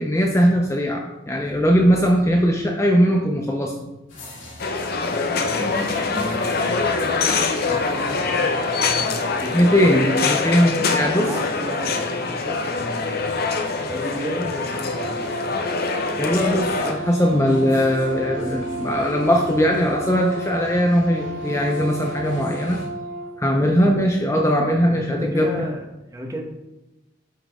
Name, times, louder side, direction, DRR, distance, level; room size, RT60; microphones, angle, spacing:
voice 1, 0.0-3.7 9.5-11.3 16.2-22.8 23.4-25.5, equal, 15° left, 1 dB, 0.6 m, -19 dB
sound 1, 4.1-22.9, left 1 dB, 85° left, 2.2 m, -39 dB
sound 2, 4.6-16.9, left 4 dB, 55° left, 0.7 m, -24 dB
voice 2, 5.4-9.9 11.0-13.3 13.9-15.3 24.9-26.4, equal, 20° right, 2 dB, 1.2 m, -34 dB
Brass instrument, 14.9-23.3, right 1 dB, 45° right, 1.0 m, -32 dB
8.9 x 5.7 x 3.6 m, 0.99 s
head